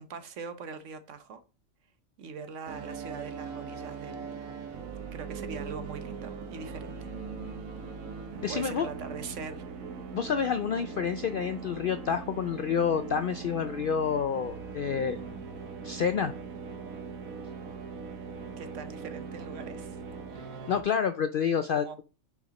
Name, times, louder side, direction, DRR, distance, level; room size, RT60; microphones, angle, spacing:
voice 1, 0.0-1.4 2.2-4.5 5.1-7.1 7.4-7.6 8.5-9.6 18.6-20.0 21.6-22.0, right 5 dB, 65° right, 1.1 m, -42 dB
sound 1, 2.7-20.8, right 5 dB, 90° right, 1.4 m, -40 dB
voice 2, 8.4-8.9 10.1-15.2 15.8-16.3 20.7-22.0, left 7 dB, 65° left, 0.5 m, -28 dB
6.4 x 4.9 x 4.1 m
omnidirectional pair, 1.4 m